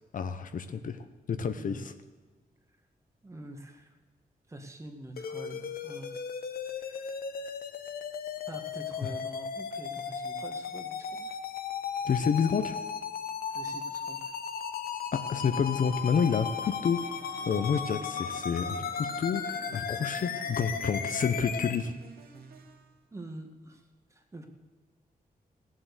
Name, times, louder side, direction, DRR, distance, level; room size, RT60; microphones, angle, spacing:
voice 1, 0.1-1.9 9.0-9.1 12.0-12.7 15.1-17.1 17.5-21.9, left 6 dB, 60° left, 9 dB, 0.9 m, -29 dB
voice 2, 1.5-1.8 3.2-3.9 4.5-6.2 6.7-7.2 8.5-11.4 13.5-14.3 23.1-24.5, right 1 dB, 20° right, 4 dB, 1.7 m, -46 dB
sound 1, 5.2-21.8, left 6 dB, 80° left, 1.1 m, -36 dB
sound 2, 15.3-23.0, right 4 dB, 85° right, 1.9 m, -51 dB
17.0 x 7.7 x 8.2 m, 1.3 s
wide cardioid pair, 170°, 15 cm